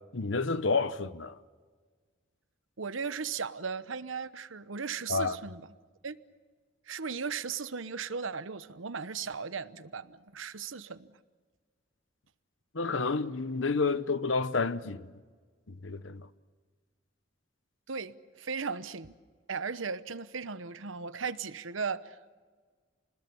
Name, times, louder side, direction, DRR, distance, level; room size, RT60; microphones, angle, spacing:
voice 1, 0.1-1.4 5.1-5.4 12.7-15.1 15.7-16.3, left 4 dB, 75° left, 1.0 m, -30 dB
voice 2, 2.8-5.7 6.0-6.2 6.9-11.1 17.9-19.1 19.5-22.3, right 5 dB, 85° right, 1.0 m, -37 dB
30.0 x 20.5 x 7.1 m
head